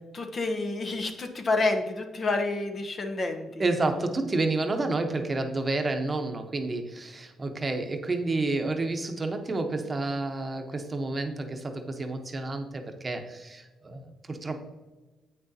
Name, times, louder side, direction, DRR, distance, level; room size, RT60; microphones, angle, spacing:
voice 1, 0.1-3.6, left 2 dB, 40° left, 5 dB, 0.9 m, -29 dB
voice 2, 3.6-14.6, right 2 dB, 30° right, 5 dB, 0.9 m, -30 dB
8.3 x 6.3 x 2.8 m, 1.2 s
cardioid pair, 90°, 0 cm